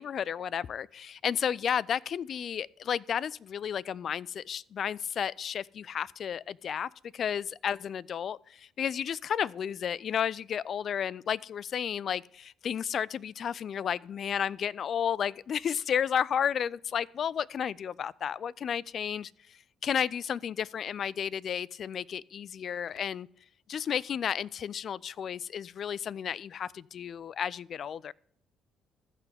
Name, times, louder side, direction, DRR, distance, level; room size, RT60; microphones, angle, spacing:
voice 1, 0.0-23.3 23.7-28.1, left 8 dB, 55° left, 0.3 m, -32 dB
15.5 x 5.9 x 3.4 m
supercardioid pair, 70°, 0 cm